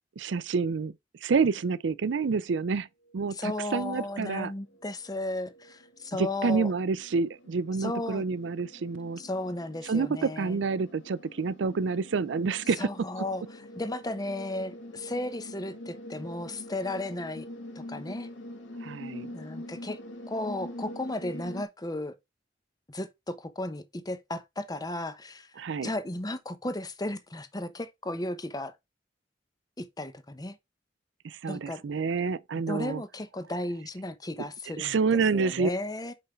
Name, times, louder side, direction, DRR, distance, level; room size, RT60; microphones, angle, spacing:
voice 1, 0.2-0.9 1.2-2.9 3.1-4.5 6.2-9.2 9.8-12.9 18.8-19.3 25.6-25.9 31.2-33.0 34.8-35.7, right 5 dB, 75° right, 0.4 m, -28 dB
sound 1, 3.1-3.2 3.5-21.6, left 1 dB, 80° left, 1.5 m, -45 dB
voice 2, 3.3-6.7 7.8-8.2 9.2-10.6 12.8-17.4 17.8-18.3 19.3-20.0 20.3-22.2 22.9-25.5 25.8-28.7 29.8-30.6 31.5-31.8 32.7-35.0 35.3-36.1, left 1 dB, 20° left, 0.8 m, -35 dB
5.6 x 5.1 x 4.4 m
head